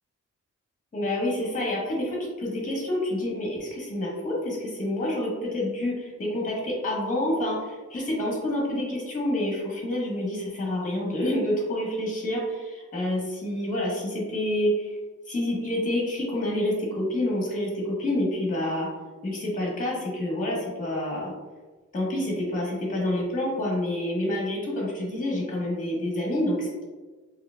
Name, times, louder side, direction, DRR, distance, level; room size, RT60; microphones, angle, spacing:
voice 1, 0.9-15.0 15.3-18.9 19.2-21.3 21.9-26.8, left 1 dB, 25° left, -4 dB, 1.0 m, -28 dB
4.6 x 3.0 x 2.2 m, 1.3 s
wide cardioid pair, 175°, 31 cm